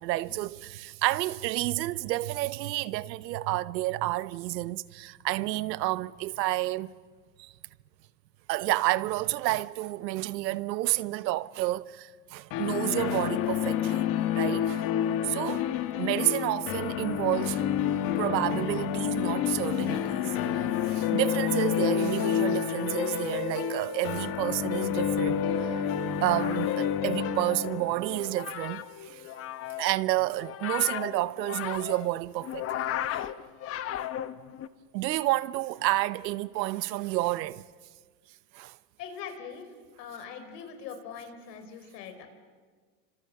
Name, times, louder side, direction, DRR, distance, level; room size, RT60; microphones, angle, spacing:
voice 1, 0.0-6.9 7.4-7.5 8.5-14.1 14.3-14.8 15.2-15.7 16.0-17.7 18.2-20.2 20.5-20.6 20.9-25.8 26.2-29.2 29.8-32.7 33.1-33.2 34.9-37.6 38.5-38.7, right 17 dB, 85° right, 0.9 m, -30 dB
sound 1, 12.5-29.2, left 9 dB, 45° left, 1.9 m, -29 dB
voice 2, 15.3-15.6 39.0-39.7 40.0-42.3, left 7 dB, 80° left, 5.0 m, -43 dB
sound 2, 26.0-34.7, left 12 dB, 30° left, 0.9 m, -36 dB
30.0 x 25.5 x 7.0 m
supercardioid pair, 130°, 49 cm